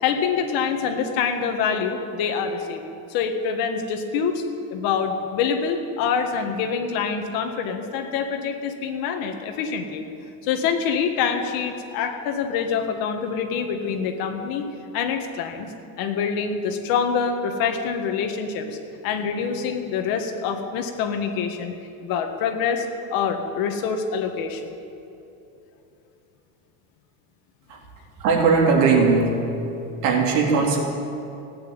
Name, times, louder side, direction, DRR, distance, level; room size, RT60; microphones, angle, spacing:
voice 1, 0.0-4.4 4.7-10.0 10.4-14.7 14.9-15.7 16.0-18.7 19.0-21.7 22.0-24.7, left 6 dB, 55° left, 5 dB, 1.7 m, -25 dB
voice 2, 28.2-29.3 30.0-30.8, right 4 dB, 70° right, -1 dB, 3.6 m, -18 dB
16.5 x 9.3 x 9.3 m, 2.8 s
cardioid pair, 165°, 42 cm